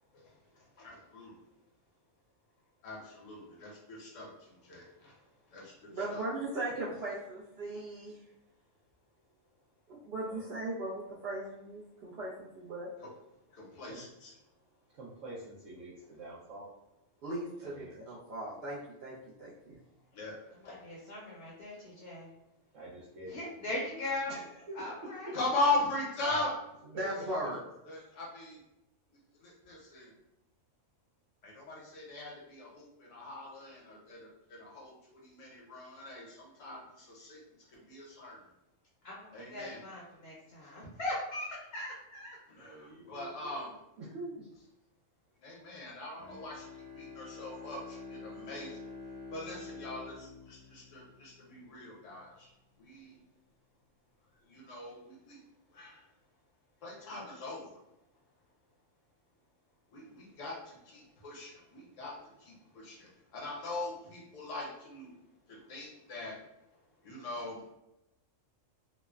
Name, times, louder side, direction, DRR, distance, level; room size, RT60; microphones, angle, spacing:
voice 1, 0.1-1.4 2.8-5.1 5.5-6.2 13.5-14.3 20.1-20.4 20.6-20.8 25.3-26.5 27.0-27.1 27.8-28.6 29.4-30.1 31.4-37.4 37.7-38.4 39.3-39.8 42.5-43.7 45.4-48.9 49.3-52.5 52.8-53.2 54.4-55.4 55.7-56.1 56.8-57.8 59.9-65.1 65.5-66.4 67.0-67.6, left 2 dB, 75° left, -3 dB, 1.2 m, -40 dB
voice 2, 5.9-8.2 9.9-12.9 17.2-19.8 27.0-27.6, right 1 dB, 60° right, -7 dB, 0.7 m, -38 dB
voice 3, 13.6-14.0 14.9-16.7 17.6-18.0 22.7-23.4 24.3-25.3 27.2-27.3 42.5-43.7 44.0-44.6, right 1 dB, 80° right, -6 dB, 1.0 m, -46 dB
voice 4, 20.6-22.3 23.3-24.4 24.8-25.3 39.0-42.4, left 2 dB, 60° left, -4 dB, 0.8 m, -39 dB
Bowed string instrument, 46.2-51.7, left 4 dB, 30° right, 0.6 m, -47 dB
3.0 x 2.0 x 2.3 m, 0.89 s
omnidirectional pair, 1.3 m